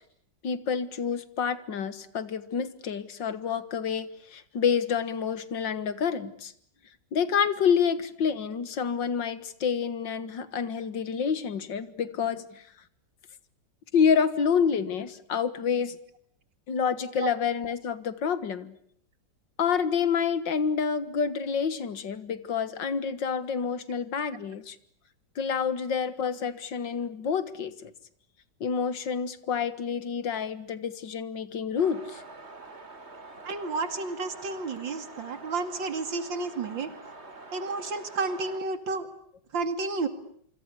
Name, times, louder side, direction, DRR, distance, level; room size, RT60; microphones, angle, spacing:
voice 1, 0.4-6.5 7.1-12.6 13.9-16.0 16.7-18.7 19.6-24.8 25.4-27.9 28.6-32.2, left 6 dB, 75° left, 15 dB, 2.3 m, -28 dB
sound 1, 31.8-38.6, right 2 dB, 35° right, 3.6 m, -46 dB
voice 2, 33.4-36.9 37.5-39.1 39.5-40.1, right 3 dB, 90° right, 11 dB, 3.1 m, -31 dB
27.5 x 25.0 x 8.4 m, 0.65 s
omnidirectional pair, 2.0 m